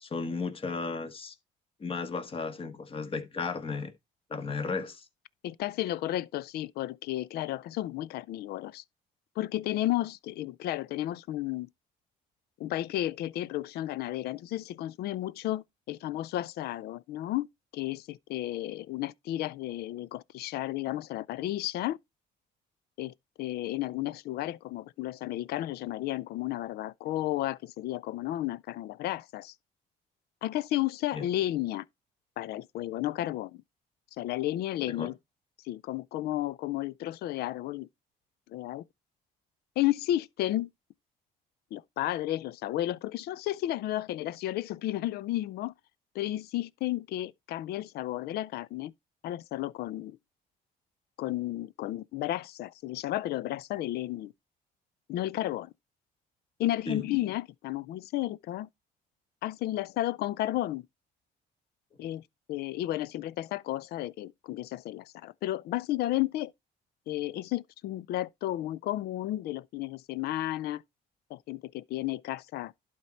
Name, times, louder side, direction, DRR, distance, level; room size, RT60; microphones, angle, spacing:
voice 1, 0.0-1.3 1.8-3.9 4.3-5.0 31.1-31.2 34.9-35.1 56.9-57.0, left 4 dB, 35° left, 1.5 m, -34 dB
voice 2, 5.4-8.8 9.4-11.7 12.6-17.5 17.7-22.0 23.0-29.5 30.4-31.9 32.4-33.6 34.2-35.2 35.6-37.9 38.5-38.8 39.8-40.7 41.7-45.7 46.1-48.9 49.2-50.2 51.2-54.3 55.1-55.7 56.6-58.7 59.4-60.9 62.0-62.2 62.5-66.5 67.1-70.8 71.3-72.7, left 14 dB, 70° left, 0.5 m, -33 dB
11.5 x 4.4 x 4.3 m
cardioid pair, 110°, 17 cm